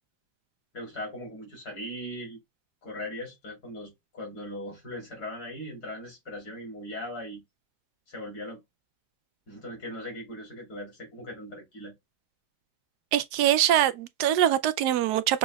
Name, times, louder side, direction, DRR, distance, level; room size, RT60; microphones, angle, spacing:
voice 1, 0.7-2.4 2.8-7.4 8.1-8.6 9.5-11.9, left 1 dB, 75° left, 3.3 m, -39 dB
voice 2, 13.1-15.4, right 11 dB, 85° right, 1.2 m, -23 dB
6.2 x 2.8 x 2.2 m
omnidirectional pair, 1.7 m